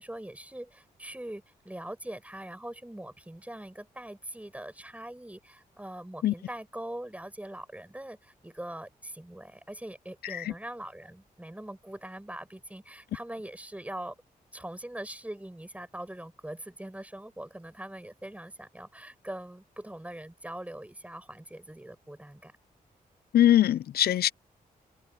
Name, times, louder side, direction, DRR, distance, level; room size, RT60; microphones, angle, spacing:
voice 1, 0.0-14.1 14.5-22.5, right 1 dB, 10° right, 7.8 m, -42 dB
voice 2, 23.3-24.3, left 12 dB, 85° left, 0.4 m, -22 dB
cardioid pair, 85°, 16 cm